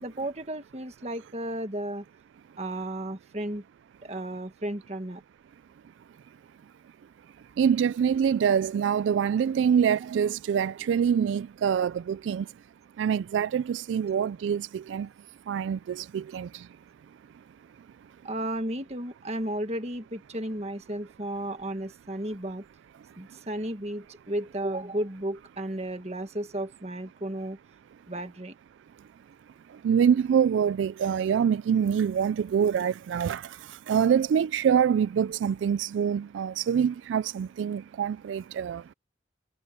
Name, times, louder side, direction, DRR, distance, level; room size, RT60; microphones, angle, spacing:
voice 1, 0.0-2.1 2.6-3.6 4.0-5.2 18.2-22.6 23.2-27.6 28.1-28.5, right 1 dB, 35° right, 1.7 m, -33 dB
voice 2, 7.6-12.5 13.0-15.1 15.5-16.7 23.3-23.4 29.7-38.9, right 7 dB, 85° right, 0.3 m, -25 dB
head